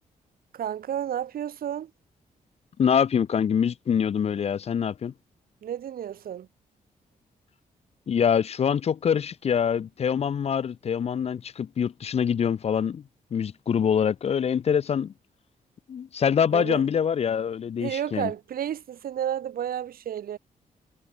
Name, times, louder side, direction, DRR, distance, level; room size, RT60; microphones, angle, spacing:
voice 1, 0.5-1.9 5.6-6.5 16.5-16.8 17.8-20.4, right 10 dB, 80° right, 3.0 m, -31 dB
voice 2, 2.8-5.1 8.1-13.0 13.3-15.1 15.9-18.3, left 7 dB, 45° left, 0.6 m, -25 dB
wide cardioid pair, 145°, 15 cm